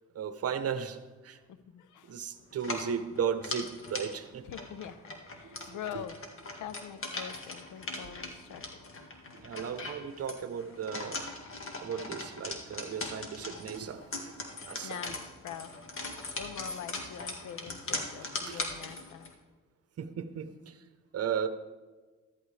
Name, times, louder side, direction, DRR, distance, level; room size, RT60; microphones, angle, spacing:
voice 1, 0.1-1.0 1.2-1.4 2.0-4.5 5.4-5.8 9.3-11.2 11.8-15.0 18.5-18.6 20.0-20.8 21.1-21.5, right 7 dB, 50° right, 11 dB, 0.9 m, -35 dB
voice 2, 1.5-2.2 4.4-6.2 6.6-9.0 11.8-11.9 13.3-13.4 14.8-15.8 16.4-19.3, left 9 dB, 75° left, 13 dB, 0.8 m, -44 dB
sound 1, 2.5-19.3, left 2 dB, 45° left, 1.9 m, -40 dB
14.0 x 13.0 x 3.4 m, 1.3 s
cardioid pair, 90°, 30 cm